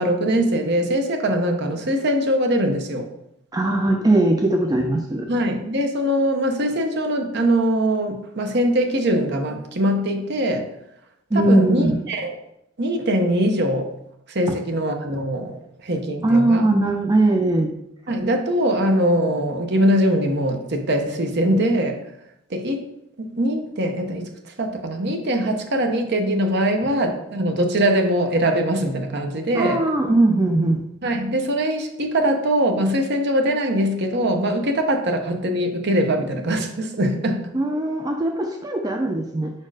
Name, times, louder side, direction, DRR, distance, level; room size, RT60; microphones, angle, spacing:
voice 1, 0.0-3.1 5.3-10.7 11.3-12.3 12.8-13.9 14.3-15.5 15.8-16.7 18.1-22.0 22.5-22.9 23.2-29.8 31.0-37.5, right 1 dB, 55° right, 4 dB, 0.8 m, -22 dB
voice 2, 3.5-5.3 11.3-12.0 14.5-14.6 16.2-17.7 29.5-30.8 37.5-39.5, right 2 dB, 20° right, 4 dB, 0.4 m, -20 dB
5.2 x 4.3 x 4.8 m, 0.80 s
head